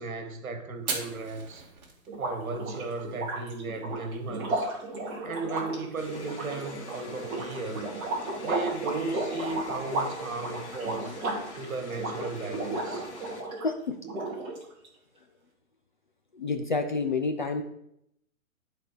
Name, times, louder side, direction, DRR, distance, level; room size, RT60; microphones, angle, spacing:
voice 1, 0.0-1.6 2.2-4.7 5.2-7.9 8.4-11.2 11.5-13.1, right 3 dB, 75° right, 1.5 m, -35 dB
Fire, 0.7-9.9, right 4 dB, 30° right, 2.4 m, -44 dB
sound 1, 2.1-13.7 14.0-14.9, right 2 dB, 10° right, 1.7 m, -34 dB
sound 2, 6.0-13.4, left 3 dB, 55° left, 2.2 m, -46 dB
voice 2, 13.6-14.0 16.3-17.6, left 4 dB, 35° left, 0.6 m, -29 dB
12.5 x 4.2 x 5.0 m
hypercardioid pair, 175°, 42 cm